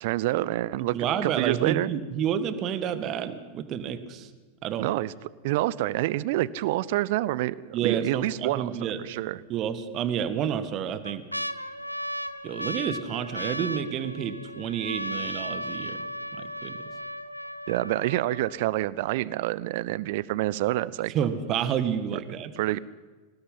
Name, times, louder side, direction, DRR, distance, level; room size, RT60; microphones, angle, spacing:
voice 1, 0.0-1.9 4.8-5.1 5.4-7.6 7.8-9.4 17.7-21.1 22.6-22.8, right 16 dB, 50° right, 21 dB, 0.7 m, -27 dB
voice 2, 0.8-4.3 4.6-4.9 7.7-9.0 9.5-11.2 12.4-16.0 16.4-16.8 21.1-22.5, right 8 dB, 35° right, 10 dB, 1.8 m, -29 dB
sound 1, 7.8-8.3 8.8-8.9 9.8-10.3 10.8-18.8 19.5-19.6 19.7-20.2 20.7-20.8, equal, 90° right, 0.8 m, -36 dB
25.0 x 18.5 x 5.7 m, 1.3 s
figure-of-eight pair, 90°, 0 cm